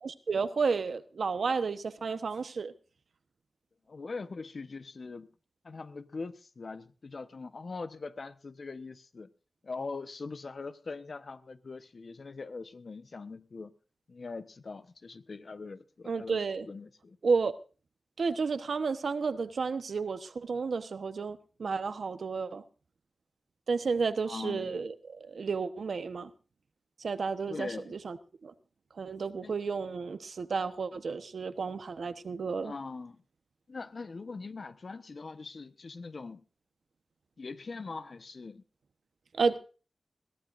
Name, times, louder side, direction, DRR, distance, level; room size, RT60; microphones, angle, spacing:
voice 1, 0.0-2.7 16.1-16.7 17.2-17.6 18.2-22.6 23.7-26.3 27.0-28.2 28.4-28.5 29.0-32.7 39.3-39.6, right 5 dB, 80° right, 1.0 m, -32 dB
voice 2, 3.9-5.3 5.6-9.3 9.6-13.7 14.1-17.2 24.3-24.7 27.5-28.0 29.4-29.5 32.6-33.2 33.7-36.4 37.4-38.6, left 4 dB, 60° left, 1.0 m, -42 dB
21.5 x 14.5 x 2.6 m
wide cardioid pair, 70°, 0 cm